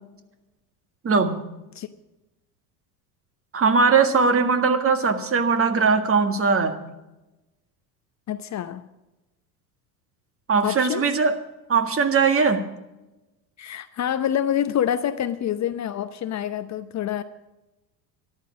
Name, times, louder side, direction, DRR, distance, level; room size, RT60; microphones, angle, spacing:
voice 1, 1.0-1.4 3.5-6.8 10.5-11.4 11.7-12.7, right 5 dB, 30° right, 8 dB, 1.8 m, -20 dB
voice 2, 8.3-8.8 10.6-11.0 13.6-17.2, left 10 dB, 35° left, 11 dB, 0.8 m, -26 dB
13.5 x 11.5 x 6.3 m, 1.0 s
hypercardioid pair, 80°, 48 cm